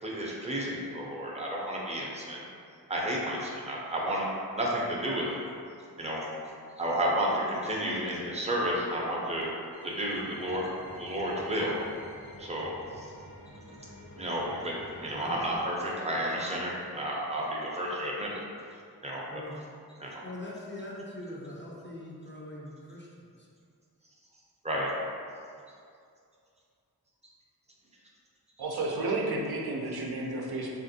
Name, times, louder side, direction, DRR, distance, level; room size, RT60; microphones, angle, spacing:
voice 1, 0.0-2.5 2.9-4.3 4.6-5.4 6.0-6.2 6.8-9.5 9.8-10.7 11.0-11.8 12.4-13.1 14.2-14.7 15.0-18.4 19.0-19.2 20.0-20.2 24.6-24.9, equal, 20° right, -4 dB, 0.6 m, -31 dB
sound 1, 9.7-15.6, equal, 65° left, 1.1 m, -49 dB
voice 2, 15.1-15.4 19.3-19.6 20.0-23.5, left 1 dB, 30° left, -4 dB, 0.5 m, -42 dB
voice 3, 28.6-30.8, right 2 dB, 80° right, -2 dB, 0.5 m, -32 dB
3.4 x 2.5 x 2.6 m, 2.3 s
wide cardioid pair, 70°, 38 cm